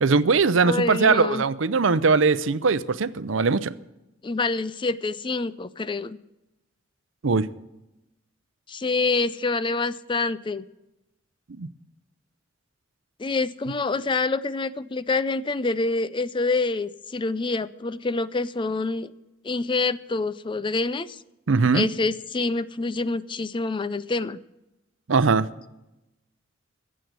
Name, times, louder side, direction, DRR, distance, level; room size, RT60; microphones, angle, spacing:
voice 1, 0.0-3.7 7.2-7.5 11.6-11.7 21.5-21.9 25.1-25.5, right 4 dB, 75° right, 16 dB, 0.6 m, -20 dB
voice 2, 0.6-1.4 4.2-6.2 8.7-10.6 13.2-19.1 19.4-21.2 21.7-24.4, left 3 dB, 25° left, 16 dB, 0.4 m, -26 dB
16.0 x 7.6 x 7.9 m, 0.95 s
head